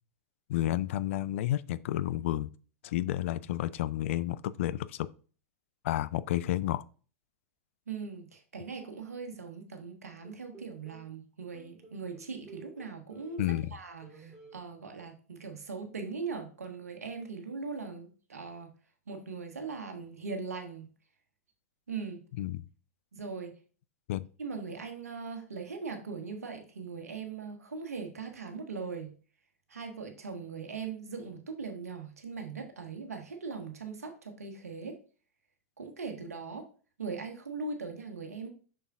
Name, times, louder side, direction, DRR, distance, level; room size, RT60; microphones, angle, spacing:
voice 1, 0.5-2.5 2.8-5.1 5.8-6.8 13.4-13.7 22.4-22.6 24.1-24.2, left 14 dB, 55° left, 0.4 m, -31 dB
voice 2, 7.9-13.4 13.7-18.7 19.1-20.9 21.9-22.2 23.1-23.6 24.4-29.1 29.7-35.0 35.8-36.7 37.0-38.5, right 4 dB, 80° right, 1.4 m, -40 dB
sound 1, 10.2-11.1 11.5-13.7 14.0-14.6, right 3 dB, 5° right, 3.0 m, -53 dB
6.7 x 6.1 x 2.4 m
figure-of-eight pair, 95°, 8 cm